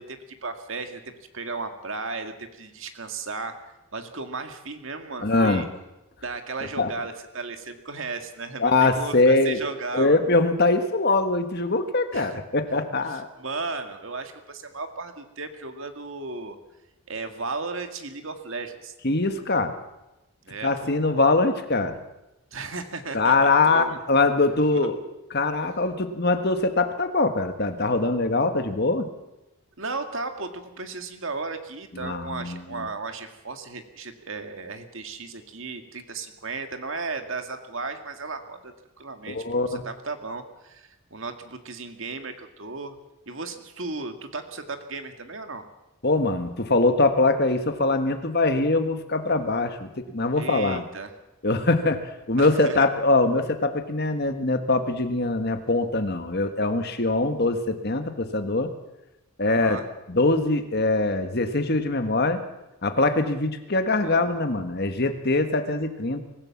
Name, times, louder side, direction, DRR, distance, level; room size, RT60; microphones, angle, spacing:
voice 1, 0.0-5.7 6.2-10.2 12.1-12.4 13.1-16.6 17.1-18.9 20.4-20.9 22.5-24.0 24.7-24.9 29.8-43.0 43.3-45.6 50.4-51.2 52.4-52.9 59.5-59.9 64.0-64.3, right 3 dB, 60° right, 7 dB, 2.0 m, -35 dB
voice 2, 5.2-5.6 6.8-6.9 8.6-9.6 9.9-13.3 19.0-19.8 20.6-22.0 23.1-25.0 25.3-29.1 32.0-32.9 39.3-39.8 46.0-50.8 51.4-58.7 59.4-59.8 60.1-62.4 62.8-66.2, left 2 dB, 45° left, 8 dB, 1.5 m, -23 dB
24.0 x 15.5 x 7.2 m, 0.98 s
head